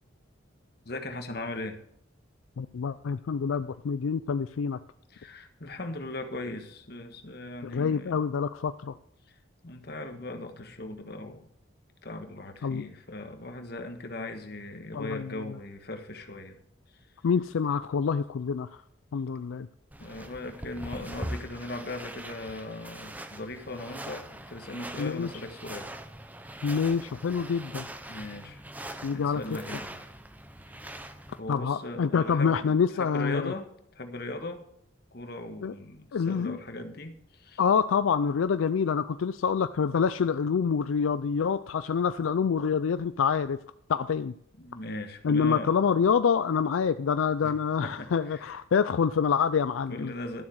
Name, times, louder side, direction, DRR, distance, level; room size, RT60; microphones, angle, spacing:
voice 1, 0.8-1.8 5.1-8.2 9.6-11.5 12.0-16.6 20.0-25.9 28.1-28.6 29.1-30.0 30.8-31.0 31.4-33.6 33.9-34.6 35.1-37.6 44.6-45.7 47.4-47.5 47.8-48.5 49.9-50.4, left 2 dB, 50° left, 6 dB, 1.4 m, -39 dB
voice 2, 2.6-4.8 7.6-9.0 12.6-12.8 14.9-15.4 17.2-18.7 19.1-19.7 25.0-25.3 26.6-27.9 29.0-29.4 31.5-33.5 35.6-35.7 36.1-36.6 37.6-43.6 43.9-44.3 45.2-50.1, left 6 dB, 85° left, 12 dB, 0.4 m, -26 dB
sound 1, 19.9-31.4, right 1 dB, 10° right, 0.6 m, -42 dB
12.5 x 7.4 x 6.3 m, 0.71 s
head